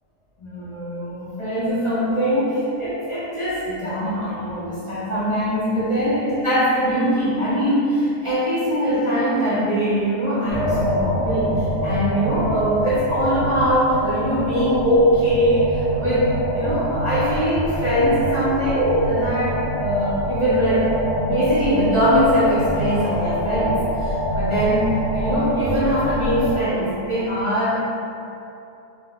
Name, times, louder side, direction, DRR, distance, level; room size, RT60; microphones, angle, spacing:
voice 1, 0.4-27.8, equal, 40° left, -13 dB, 0.4 m, -22 dB
sound 1, 10.5-26.6, equal, 60° left, 1.2 m, -25 dB
2.7 x 2.1 x 3.6 m, 2.7 s
omnidirectional pair, 1.5 m